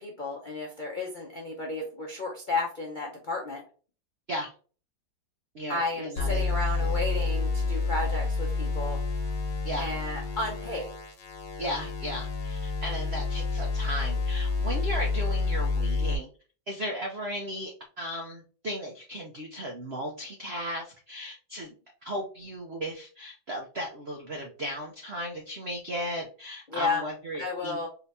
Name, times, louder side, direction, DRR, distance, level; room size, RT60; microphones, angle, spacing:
voice 1, 0.0-3.6 5.7-9.0 9.8-10.9 26.7-27.0 27.4-27.9, left 3 dB, 85° left, -1 dB, 0.4 m, -32 dB
voice 2, 5.5-6.5 6.8-7.0 9.6-9.9 11.6-16.3 16.7-21.7 22.0-27.8, equal, 80° right, 1 dB, 0.5 m, -36 dB
sound 1, 6.2-16.2, left 3 dB, 70° left, 1.6 m, -29 dB
4.2 x 2.8 x 3.3 m, 0.39 s
omnidirectional pair, 2.1 m